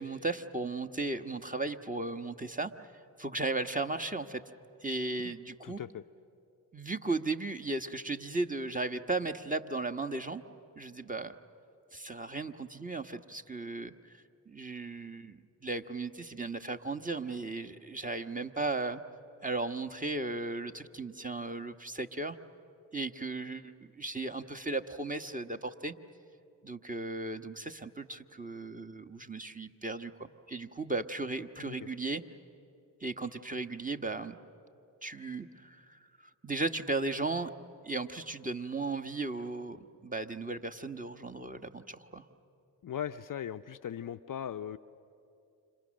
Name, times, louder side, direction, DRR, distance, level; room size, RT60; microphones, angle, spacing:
voice 1, 0.0-2.9 3.2-4.4 4.8-5.8 6.7-10.4 10.8-11.3 11.9-19.0 19.4-22.4 22.9-25.9 26.6-32.2 33.0-34.4 35.0-37.5 37.8-42.3, right 3 dB, 15° right, 8 dB, 1.2 m, -36 dB
voice 2, 5.6-6.0 31.6-31.7 42.8-44.8, left 9 dB, 45° left, 10 dB, 0.6 m, -39 dB
29.5 x 26.5 x 6.5 m, 2.6 s
supercardioid pair, 45°, 45 cm